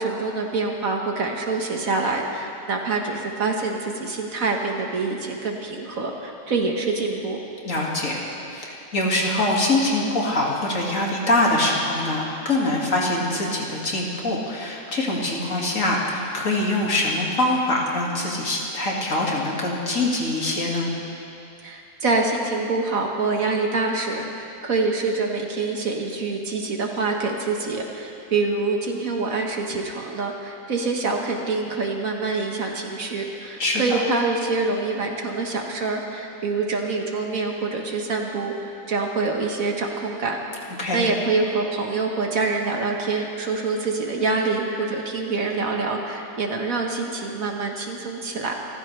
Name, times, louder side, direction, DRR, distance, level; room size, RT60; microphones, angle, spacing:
voice 1, 0.0-7.4 21.6-38.5 38.9-40.4 40.9-48.5, right 3 dB, 60° right, 1 dB, 1.8 m, -25 dB
voice 2, 7.6-8.2 8.5-20.9 33.6-34.0 40.8-41.0, left 2 dB, 55° left, -3 dB, 2.5 m, -24 dB
28.0 x 14.5 x 3.3 m, 2.7 s
omnidirectional pair, 1.7 m